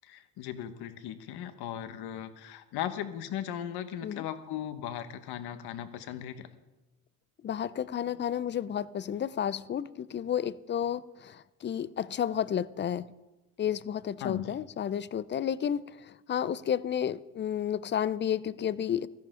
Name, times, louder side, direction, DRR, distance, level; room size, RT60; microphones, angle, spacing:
voice 1, 0.0-6.5 14.2-14.5, left 10 dB, 55° left, 1.5 m, -37 dB
voice 2, 7.4-13.1 13.6-19.1, left 9 dB, 25° left, 0.5 m, -31 dB
16.0 x 13.5 x 3.8 m
hypercardioid pair, 75°, 46 cm